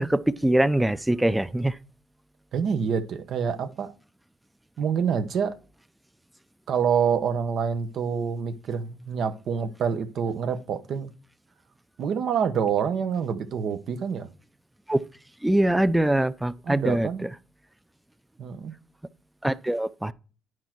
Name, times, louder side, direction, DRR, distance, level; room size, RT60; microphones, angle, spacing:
voice 1, 0.0-1.7 14.9-15.0 15.4-17.1 19.4-20.1, right 1 dB, 5° right, 0.5 m, -23 dB
voice 2, 2.5-3.9 4.8-5.5 6.7-11.1 12.0-14.3 16.6-17.3 18.4-18.7, right 7 dB, 60° right, 1.0 m, -27 dB
9.7 x 4.5 x 4.5 m
cardioid pair, 85°, 0 cm